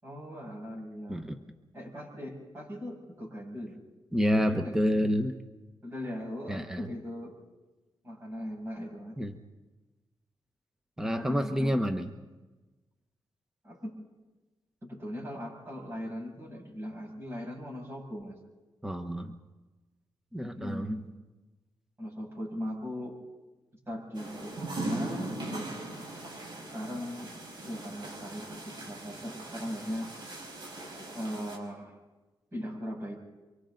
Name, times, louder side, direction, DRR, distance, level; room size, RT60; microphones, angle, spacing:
voice 1, 0.0-1.3 1.7-3.8 4.4-4.8 5.8-7.4 8.0-9.2 11.0-12.0 13.6-14.0 14.8-18.4 20.4-21.1 22.0-23.2 23.9-25.7 26.7-27.3 27.6-30.1 31.1-32.0 32.5-33.2, equal, 30° right, -2 dB, 7.6 m, -39 dB
voice 2, 4.1-5.3 6.5-6.9 9.2-9.4 11.0-12.1 18.8-19.3 20.3-21.0, equal, 5° right, 7 dB, 1.1 m, -28 dB
sound 1, 24.1-31.6, right 2 dB, 60° right, 5.2 m, -40 dB
28.5 x 24.5 x 4.0 m, 1.2 s
cardioid pair, 100°, 9 cm